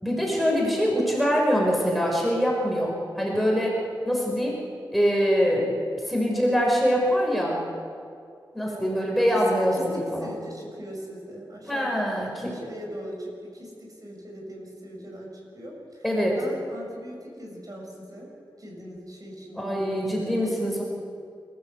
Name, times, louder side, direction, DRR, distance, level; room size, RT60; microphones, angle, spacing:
voice 1, 0.0-3.8 4.0-4.6 4.9-5.7 6.1-7.6 8.5-10.3 11.7-12.6 16.0-16.4 19.6-20.8, equal, ahead, -2 dB, 5.5 m, -24 dB
voice 2, 9.7-16.1 16.4-18.3 18.6-20.8, equal, 45° right, -1 dB, 7.2 m, -40 dB
28.0 x 16.0 x 8.2 m, 2.3 s
wide cardioid pair, 75°, 9 cm